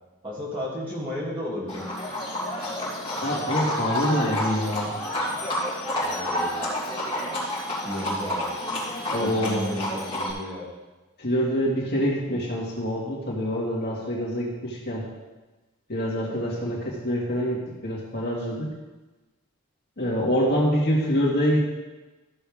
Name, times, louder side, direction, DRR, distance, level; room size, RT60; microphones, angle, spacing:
voice 1, 0.2-1.8 5.9-6.5 7.8-8.5 9.2-10.7 16.6-16.7, equal, 25° right, -6 dB, 2.5 m, -33 dB
Livestock farm animals working animals, 1.7-10.3, left 1 dB, 25° left, 2.7 m, -29 dB
voice 2, 3.2-4.9 9.1-9.8 11.2-15.1 15.9-18.7 20.0-21.7, equal, 45° left, -4 dB, 2.1 m, -25 dB
14.0 x 6.7 x 3.6 m, 1.2 s
head